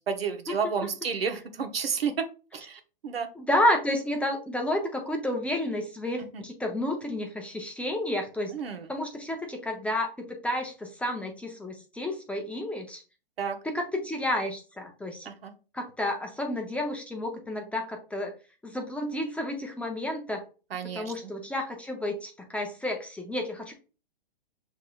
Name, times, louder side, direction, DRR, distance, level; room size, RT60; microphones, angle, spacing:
voice 1, 0.1-2.3 2.5-3.3 6.3-6.4 8.5-8.9 13.4-13.6 15.2-15.5 20.7-21.3, right 6 dB, 80° right, 6 dB, 1.0 m, -31 dB
voice 2, 3.4-8.6 8.9-13.0 13.6-15.3 15.7-18.4 18.6-20.4 20.9-23.7, left 1 dB, 5° left, 2 dB, 0.6 m, -31 dB
6.3 x 3.1 x 2.3 m, 0.35 s
hypercardioid pair, 120°, 29 cm